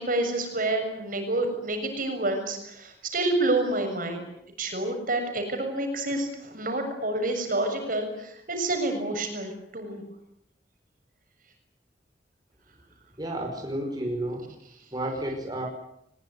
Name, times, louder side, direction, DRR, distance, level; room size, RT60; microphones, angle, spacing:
voice 1, 0.0-4.3 4.6-10.0, right 2 dB, 50° right, 6 dB, 6.9 m, -28 dB
voice 2, 13.2-14.5 14.9-15.7, right 1 dB, 25° right, 1 dB, 5.3 m, -31 dB
23.0 x 21.5 x 9.8 m, 0.76 s
head